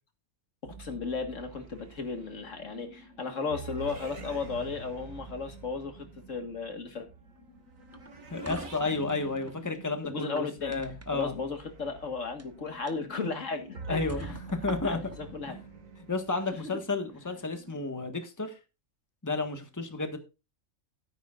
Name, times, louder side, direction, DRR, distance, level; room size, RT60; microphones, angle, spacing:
voice 1, 0.6-7.1 10.0-10.7 11.1-14.4 14.8-15.6, left 4 dB, 70° left, 2.1 m, -35 dB
sound 1, 0.6-18.1, right 3 dB, 85° right, 2.3 m, -46 dB
sound 2, 7.9-9.6 10.1-11.2 12.2-12.4 12.9-13.0 13.5-13.6 14.1-15.2, right 2 dB, 15° right, 0.9 m, -44 dB
voice 2, 8.3-11.3 13.9-15.0 15.5-15.6 16.1-18.6 19.2-20.2, left 3 dB, 15° left, 1.6 m, -32 dB
13.5 x 10.0 x 2.5 m
omnidirectional pair, 1.4 m